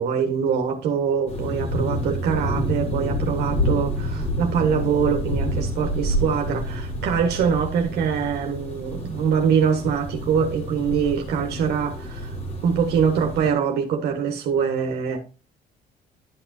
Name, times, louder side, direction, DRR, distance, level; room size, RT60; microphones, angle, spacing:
voice 1, 0.0-12.3 12.6-15.2, right 7 dB, 75° right, 1.4 m, -23 dB
sound 1, 1.3-13.5, equal, 40° left, 3.1 m, -28 dB
11.5 x 5.9 x 2.7 m
cardioid pair, 110°, 17 cm